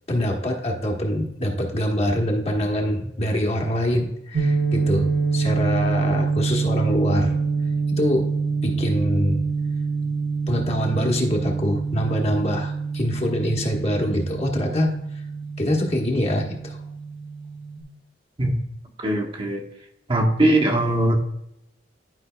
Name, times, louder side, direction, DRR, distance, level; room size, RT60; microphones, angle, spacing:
voice 1, 0.1-7.3 7.9-8.3 8.6-9.4 10.5-14.9 15.6-16.8, equal, 35° left, 0 dB, 1.2 m, -24 dB
sound 1, 4.3-17.8, right 4 dB, 85° right, 1.1 m, -26 dB
voice 2, 19.0-19.6 20.1-21.2, right 1 dB, 30° right, 2 dB, 0.9 m, -20 dB
11.5 x 5.4 x 2.2 m, 0.81 s
head